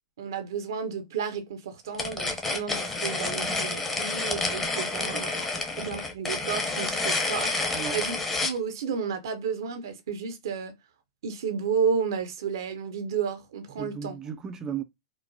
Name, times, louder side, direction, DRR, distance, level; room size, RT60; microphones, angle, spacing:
voice 1, 0.2-5.4 5.7-10.7 11.2-14.2, right 6 dB, 60° right, 0.6 m, -32 dB
sound 1, 1.9-8.6, left 3 dB, 15° left, 0.9 m, -29 dB
voice 2, 7.7-8.0 13.8-14.8, right 7 dB, 20° right, 0.4 m, -35 dB
4.5 x 2.0 x 2.7 m
figure-of-eight pair, 105°, 2 cm